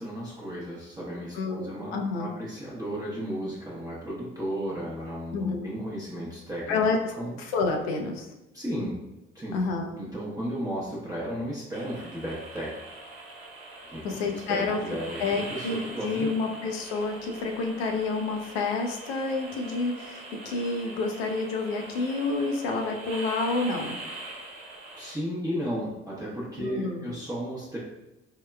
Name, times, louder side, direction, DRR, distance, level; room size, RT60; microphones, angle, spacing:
voice 1, 0.0-6.8 7.2-7.4 8.5-9.0 9.3-9.6 9.9-12.7 13.9-14.0 14.3-16.3 25.0-27.8, equal, 10° right, -7 dB, 0.8 m, -34 dB
voice 2, 1.3-2.3 5.3-5.7 6.7-7.0 7.4-8.3 9.5-9.9 14.0-14.8 15.2-24.0 26.6-27.1, left 3 dB, 80° left, 3 dB, 0.5 m, -29 dB
sound 1, 11.7-25.1, right 2 dB, 85° right, 0.6 m, -42 dB
3.5 x 2.1 x 2.2 m, 0.94 s
hypercardioid pair, 50°, 31 cm